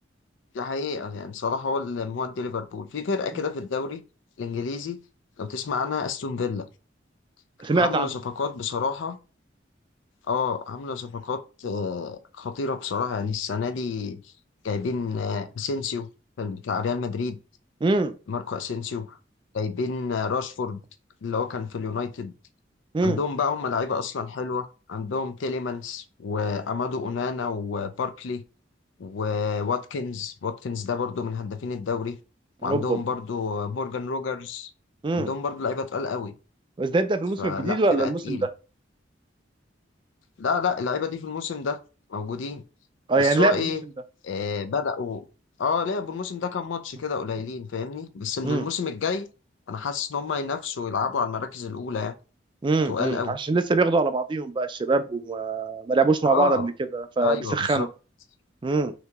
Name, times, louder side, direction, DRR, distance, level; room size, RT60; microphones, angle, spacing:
voice 1, 0.5-4.0 4.4-5.0 5.4-6.7 7.7-9.2 10.3-14.2 14.6-16.1 16.4-17.4 18.3-19.2 19.5-20.8 21.2-22.3 23.0-28.4 29.0-32.2 32.6-34.7 35.1-36.3 37.4-38.5 40.4-41.8 42.1-42.6 43.2-43.8 44.2-45.2 45.6-49.3 49.7-52.1 52.9-53.4 56.2-56.7 57.2-57.9, left 5 dB, 80° left, 0.4 m, -29 dB
voice 2, 7.6-8.1 17.8-18.2 22.9-23.2 32.6-33.0 35.0-35.3 36.8-38.4 43.1-43.7 48.4-48.7 52.6-57.9 58.6-58.9, right 3 dB, 25° right, 0.3 m, -23 dB
2.9 x 2.8 x 3.4 m
head